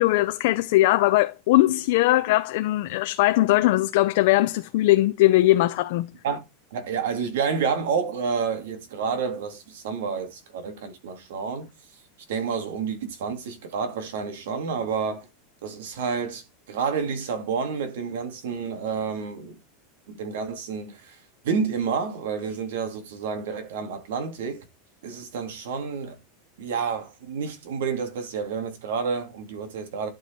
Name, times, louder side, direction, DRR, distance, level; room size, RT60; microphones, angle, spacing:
voice 1, 0.0-6.1, left 17 dB, 50° left, 0.5 m, -20 dB
voice 2, 6.7-11.7 12.3-15.3 15.6-19.6 20.1-24.7 25.0-26.2 26.6-30.1, right 6 dB, 70° right, 2.5 m, -29 dB
12.0 x 4.8 x 4.4 m
supercardioid pair, 180°, 0 cm